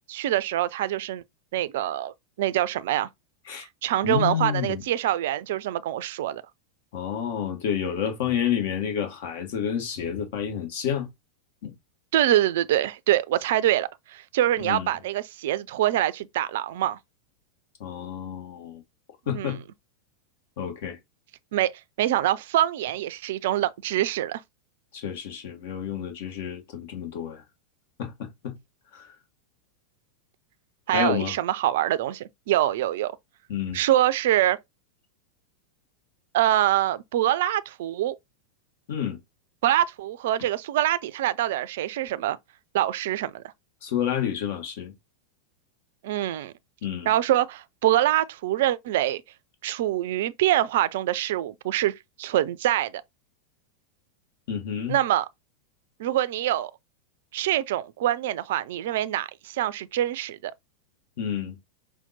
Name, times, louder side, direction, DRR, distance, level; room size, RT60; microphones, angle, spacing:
voice 1, 0.1-1.2 1.5-3.1 3.6-6.4 12.1-17.0 19.3-19.6 21.5-21.7 22.0-24.4 30.9-33.2 33.7-34.6 36.3-38.1 39.6-42.4 42.7-43.4 46.0-46.5 47.1-49.2 49.6-53.0 54.9-55.3 56.0-56.7 57.3-60.5, right 13 dB, 55° right, 0.4 m, -25 dB
voice 2, 4.0-4.8 6.9-11.1 11.6-11.7 14.6-14.9 17.8-18.8 19.3-19.6 20.6-21.0 24.9-27.4 28.0-28.6 28.9-29.1 30.9-31.3 33.5-33.8 38.9-39.2 43.8-44.9 46.8-47.1 54.5-55.0 61.2-61.6, left 8 dB, 50° left, 1.2 m, -29 dB
5.6 x 2.2 x 4.0 m
figure-of-eight pair, 90°, 0 cm